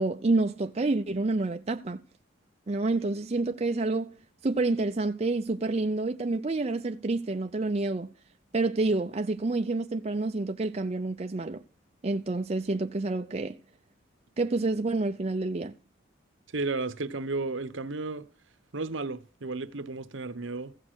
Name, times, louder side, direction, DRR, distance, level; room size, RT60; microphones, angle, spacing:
voice 1, 0.0-2.0 2.7-4.1 4.4-8.1 8.5-11.6 12.0-13.6 14.4-15.7, right 2 dB, 30° right, 0.5 m, -28 dB
voice 2, 16.5-18.3 18.7-20.9, right 3 dB, 65° right, 0.9 m, -33 dB
15.5 x 6.3 x 6.2 m
head